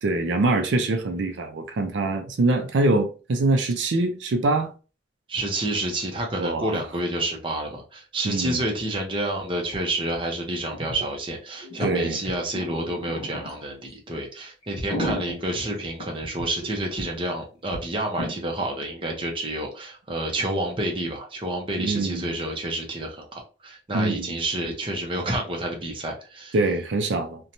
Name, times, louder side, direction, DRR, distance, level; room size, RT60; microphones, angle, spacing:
voice 1, 0.0-4.7 6.3-6.8 8.2-8.6 11.8-12.2 21.8-22.3 23.9-24.4 26.5-27.5, right 2 dB, 85° right, 0.4 m, -24 dB
voice 2, 5.3-26.5, right 1 dB, 30° right, 0.6 m, -29 dB
sound 1, 9.7-9.8 10.0-10.1 10.7-11.1 11.6-13.6 14.1-14.2 14.6-16.7 17.0-17.1 17.3-17.4 17.7-17.8 18.2-18.3, equal, 25° left, 1.2 m, -33 dB
2.6 x 2.2 x 2.8 m
head